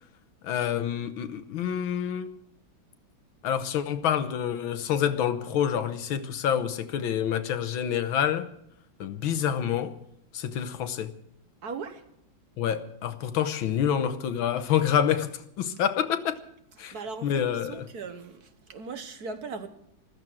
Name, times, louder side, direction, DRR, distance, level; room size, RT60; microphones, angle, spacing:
voice 1, 0.4-2.3 3.4-8.5 9.0-10.0 10.3-11.1 12.6-16.4 16.8-16.9 17.2-17.8, left 9 dB, 85° left, 1.8 m, -27 dB
voice 2, 11.6-12.0 16.9-19.7, right 5 dB, 55° right, 1.5 m, -38 dB
14.5 x 13.5 x 6.2 m
omnidirectional pair, 2.2 m